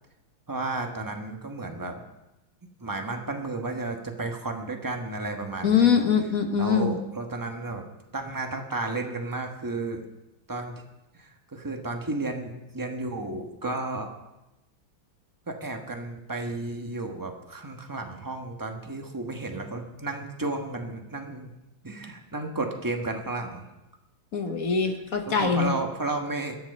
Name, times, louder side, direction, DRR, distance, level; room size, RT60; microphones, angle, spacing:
voice 1, 0.5-2.0 2.8-6.1 6.6-7.8 8.1-10.0 10.5-10.7 11.1-14.1 15.5-21.5 21.8-23.7 24.8-24.9 25.2-26.6, right 2 dB, 15° right, 3 dB, 1.0 m, -33 dB
voice 2, 5.6-7.0 24.3-25.7, left 6 dB, 50° left, 5 dB, 1.4 m, -23 dB
21.5 x 7.4 x 5.4 m, 0.97 s
omnidirectional pair, 2.2 m